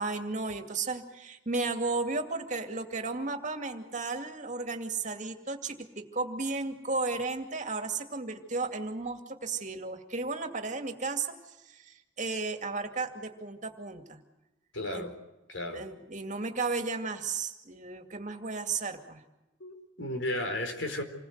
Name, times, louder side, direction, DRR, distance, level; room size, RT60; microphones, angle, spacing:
voice 1, 0.0-14.2 14.9-15.1 15.7-19.2, right 3 dB, 35° right, 2.3 m, -34 dB
voice 2, 14.7-15.2 15.5-15.9 19.6-21.0, left 1 dB, 65° left, 4.3 m, -34 dB
27.5 x 20.5 x 8.1 m
head